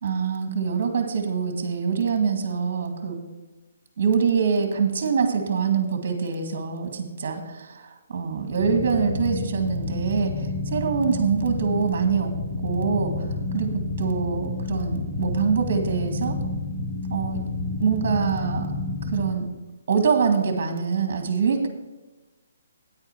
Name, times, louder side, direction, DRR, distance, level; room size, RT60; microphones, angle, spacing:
voice 1, 0.0-3.2 4.0-12.4 12.6-13.1 13.5-13.7 14.0-16.4 17.1-17.4 17.8-18.7 19.1-19.5 19.9-21.7, right 6 dB, 50° right, 5 dB, 1.9 m, -24 dB
sound 1, 8.6-19.3, left 2 dB, 50° left, 1.5 m, -30 dB
9.6 x 8.9 x 4.5 m, 1.1 s
hypercardioid pair, 155°, 0 cm